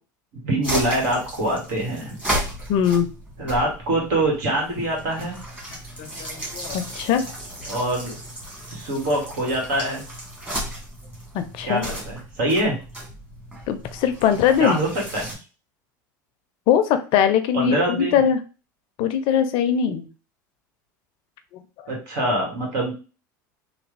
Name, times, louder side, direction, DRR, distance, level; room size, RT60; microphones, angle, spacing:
voice 1, 0.4-2.2 3.4-5.4 7.7-8.2 8.7-10.0 11.6-12.7 14.6-15.3 17.5-18.2 21.9-22.9, right 1 dB, 65° right, -1 dB, 1.8 m, -24 dB
sound 1, 0.6-15.3, right 1 dB, 10° right, 1.6 m, -34 dB
voice 2, 2.7-3.1 6.0-7.3 11.3-11.9 13.7-14.8 16.7-18.4 19.0-20.1 21.8-21.9, left 9 dB, 55° left, 9 dB, 0.5 m, -21 dB
3.3 x 2.4 x 3.3 m, 0.34 s
hypercardioid pair, 85°, 10 cm